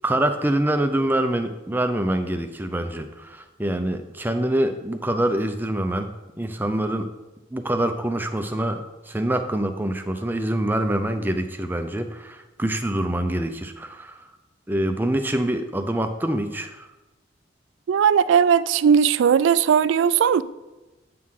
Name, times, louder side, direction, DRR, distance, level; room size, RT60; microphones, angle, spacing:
voice 1, 0.0-6.1 6.4-7.1 7.5-14.2 14.7-16.9, right 1 dB, 10° right, 0.5 m, -25 dB
voice 2, 17.9-20.4, right 7 dB, 70° right, 0.3 m, -18 dB
8.5 x 6.2 x 3.7 m
head